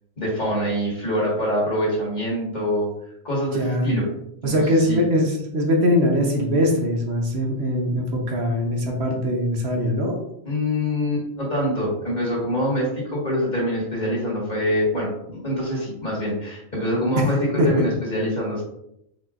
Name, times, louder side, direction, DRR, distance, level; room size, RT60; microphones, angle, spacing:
voice 1, 0.2-2.9 3.2-4.0 4.4-5.0 10.4-18.6, equal, 40° left, -5 dB, 1.8 m, -25 dB
voice 2, 3.5-3.9 4.4-10.2 17.2-17.3 17.6-17.9, equal, 65° right, 1 dB, 1.1 m, -21 dB
4.7 x 4.1 x 2.4 m, 0.78 s
omnidirectional pair, 1.2 m